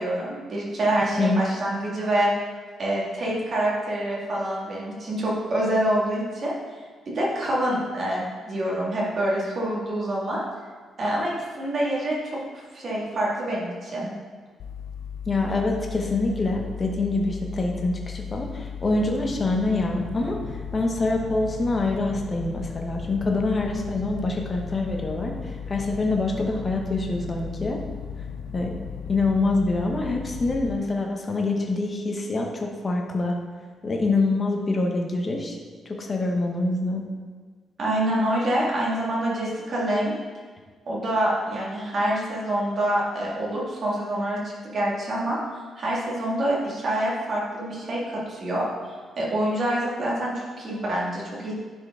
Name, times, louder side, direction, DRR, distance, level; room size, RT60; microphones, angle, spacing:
voice 1, 0.0-2.3 2.8-6.5 7.1-10.4 11.0-12.4 12.7-14.1 37.8-40.2 40.9-44.4 44.6-45.4 45.8-48.7 49.2-51.5, right 1 dB, 40° right, -5 dB, 1.9 m, -26 dB
sound 1, 14.6-30.8, left 7 dB, 65° left, 0.4 m, -36 dB
voice 2, 15.3-20.4 20.7-27.8 28.5-28.8 29.1-33.4 33.8-35.6 35.9-37.0, left 2 dB, 25° left, 1 dB, 0.8 m, -25 dB
9.9 x 4.4 x 3.6 m, 1.5 s
cardioid pair, 155°, 0 cm